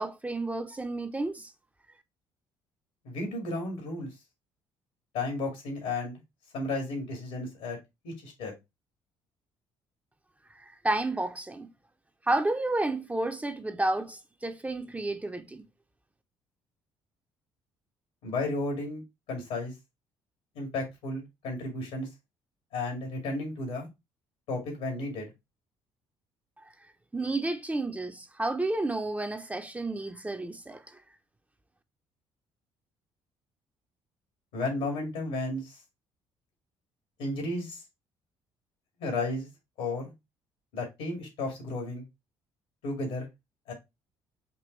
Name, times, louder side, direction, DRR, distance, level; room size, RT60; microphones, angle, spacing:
voice 1, 0.0-1.5 10.8-11.7 12.3-15.6 27.1-30.8, right 2 dB, 15° right, 0.6 m, -31 dB
voice 2, 3.0-4.1 5.1-6.2 6.5-7.8 8.0-8.5 18.2-19.0 19.3-19.7 20.6-22.1 22.7-23.9 24.5-25.3 34.5-35.7 37.2-37.8 39.0-39.5 39.8-40.1 40.7-42.1 42.8-43.3 43.7-43.8, left 2 dB, 80° left, 2.2 m, -33 dB
5.3 x 2.5 x 3.1 m
supercardioid pair, 65°, 11 cm